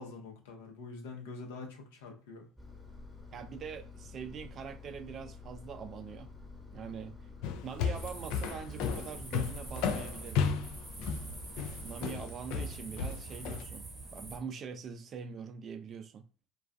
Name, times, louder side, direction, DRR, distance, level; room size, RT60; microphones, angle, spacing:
voice 1, 0.0-2.5, left 3 dB, 90° left, 0.7 m, -45 dB
Engine, 2.6-12.2, left 4 dB, 10° left, 0.8 m, -50 dB
voice 2, 3.3-6.3 6.7-7.1 7.6-10.5 11.8-16.2, right 6 dB, 45° right, 0.3 m, -43 dB
sound 1, 7.4-13.6, left 6 dB, 70° left, 0.3 m, -33 dB
sound 2, 8.0-14.4, right 3 dB, 20° right, 0.8 m, -45 dB
2.3 x 2.3 x 2.5 m
supercardioid pair, 95°, 0 cm